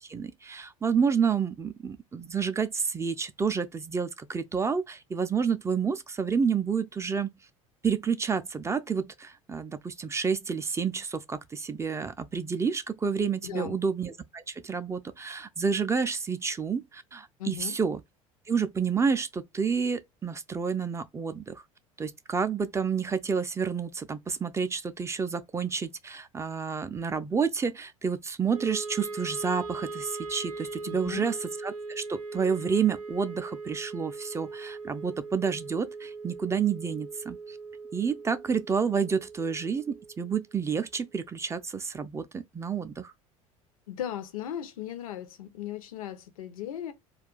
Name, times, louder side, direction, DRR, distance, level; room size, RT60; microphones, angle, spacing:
voice 1, 0.0-7.3 7.8-18.0 18.5-21.6 22.0-37.6 37.9-43.1, right 6 dB, 15° right, 0.4 m, -29 dB
voice 2, 13.4-13.8 17.4-17.8 30.8-31.3 43.9-46.9, left 10 dB, 75° left, 0.6 m, -37 dB
Wind instrument woodwind instrument, 28.5-40.7, right 3 dB, 85° right, 0.4 m, -40 dB
2.3 x 2.3 x 3.8 m
figure-of-eight pair, 70°, 18 cm